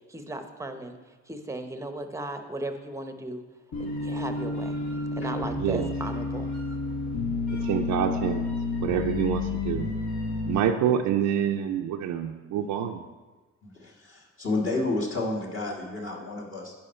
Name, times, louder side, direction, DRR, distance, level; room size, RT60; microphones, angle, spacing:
voice 1, 0.0-3.4 3.8-4.8 5.2-6.5, right 2 dB, 10° right, 7 dB, 0.7 m, -36 dB
sound 1, 3.7-10.6, left 3 dB, 70° left, 1.3 m, -30 dB
voice 2, 7.6-8.5 8.8-9.9 10.5-13.0, right 9 dB, 75° right, 3 dB, 0.5 m, -27 dB
voice 3, 13.6-16.7, left 2 dB, 45° left, -2 dB, 1.7 m, -31 dB
10.5 x 4.7 x 4.3 m, 1.3 s
cardioid pair, 90°, 30 cm